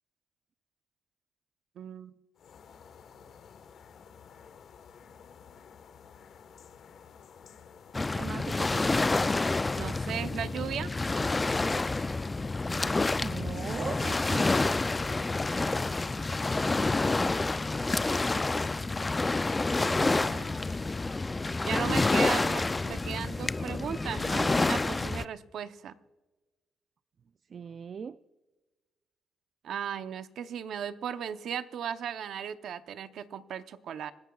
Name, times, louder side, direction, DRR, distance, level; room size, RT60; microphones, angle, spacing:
voice 1, 1.8-2.1 9.8-10.9 19.8-20.6 21.5-25.9 29.6-34.1, right 8 dB, 70° right, 11 dB, 0.7 m, -36 dB
sound 1, 2.4-21.2, left 7 dB, 65° left, 1.3 m, -52 dB
Waves surf, 7.9-25.3, left 3 dB, 20° left, 0.4 m, -28 dB
voice 2, 8.1-9.0 13.2-14.5 27.5-28.2, right 6 dB, 50° right, 13 dB, 0.3 m, -39 dB
26.0 x 14.5 x 2.4 m, 1.2 s
cardioid pair, 90°, 0 cm